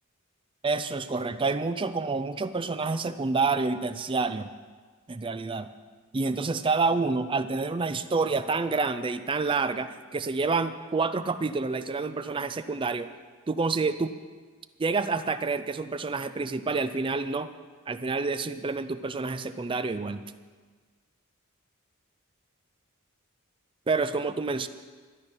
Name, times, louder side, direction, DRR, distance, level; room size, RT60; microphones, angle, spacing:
voice 1, 0.6-4.5 5.1-5.7 6.1-13.1 13.5-14.1 14.8-17.5 17.9-20.2 23.9-24.7, right 4 dB, 25° right, 12 dB, 0.4 m, -28 dB
12.0 x 10.5 x 6.0 m, 1.5 s
head